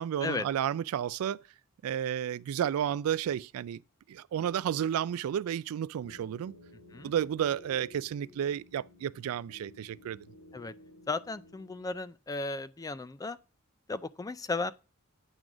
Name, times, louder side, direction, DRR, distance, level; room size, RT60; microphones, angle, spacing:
voice 1, 0.0-1.4 1.8-3.8 4.1-6.5 7.0-10.3, right 9 dB, 80° right, 0.3 m, -32 dB
sound 1, 6.0-11.9, left 2 dB, 60° left, 1.8 m, -55 dB
voice 2, 11.1-13.4 13.9-14.7, left 3 dB, 15° left, 0.3 m, -35 dB
9.0 x 3.8 x 6.0 m
head